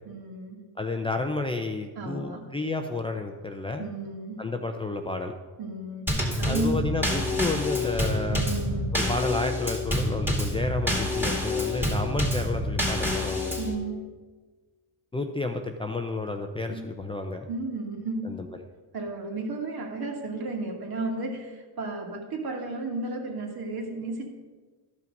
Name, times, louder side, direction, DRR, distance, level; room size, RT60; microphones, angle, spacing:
voice 1, 0.0-0.6 2.0-2.4 3.8-4.4 5.6-6.1 6.4-6.8 8.3-8.9 13.6-14.0 16.7-16.8 17.5-18.4 18.9-24.3, right 2 dB, 50° right, 1 dB, 2.3 m, -33 dB
voice 2, 0.8-3.8 4.4-5.3 6.4-8.4 8.9-13.5 15.1-17.5 18.2-18.5, left 3 dB, 10° left, 4 dB, 0.5 m, -31 dB
Drum kit / Snare drum / Bass drum, 6.1-13.7, left 1 dB, 5° right, 2.2 m, -27 dB
12.5 x 5.6 x 5.3 m, 1.4 s
cardioid pair, 90°, 49 cm